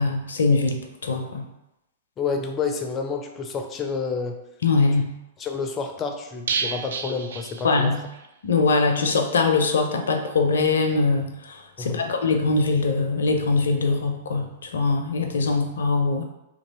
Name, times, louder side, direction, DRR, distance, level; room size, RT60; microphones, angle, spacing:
voice 1, 0.0-1.4 4.6-5.1 7.6-8.0 8.4-16.2, left 3 dB, 70° left, 5 dB, 0.5 m, -22 dB
voice 2, 2.2-4.4 5.4-8.0 11.8-12.0, left 5 dB, 25° left, 4 dB, 0.5 m, -29 dB
sound 1, 6.5-8.3 8.5-8.6 9.0-9.1, right 5 dB, 65° right, 0.3 m, -31 dB
2.9 x 2.6 x 4.1 m, 0.90 s
figure-of-eight pair, 105°, 0 cm